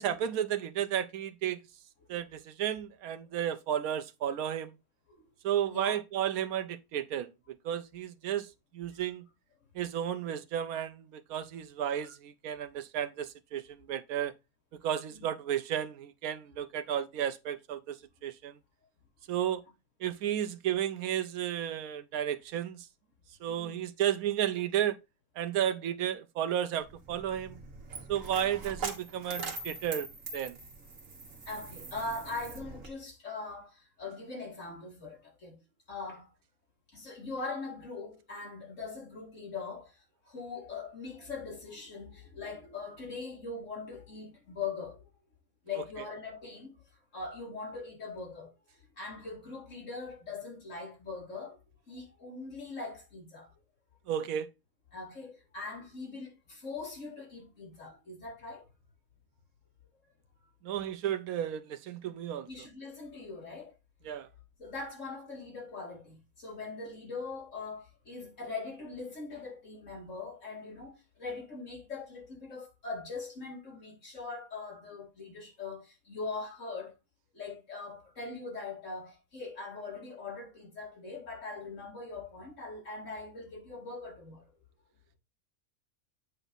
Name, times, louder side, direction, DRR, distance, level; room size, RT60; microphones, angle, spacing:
voice 1, 0.0-1.6 2.1-4.7 5.4-7.3 7.6-8.5 8.7-9.2 9.8-14.3 14.8-18.0 18.2-18.6 19.3-19.6 20.0-22.9 23.4-25.0 25.4-27.6 28.1-30.1 30.3-30.6 54.1-54.5 60.6-62.5 64.0-64.3, right 10 dB, 85° right, 1.1 m, -33 dB
voice 2, 23.5-23.8 27.9-28.0 31.5-35.6 35.9-36.3 36.9-45.1 45.6-46.9 47.1-48.5 49.0-51.6 51.9-53.5 54.9-58.7 62.5-63.7 64.6-76.9 77.3-84.5, left 4 dB, 60° left, 3.3 m, -41 dB
Coin (dropping), 26.8-32.9, right 4 dB, 65° right, 1.7 m, -42 dB
8.1 x 4.5 x 4.0 m
omnidirectional pair, 1.5 m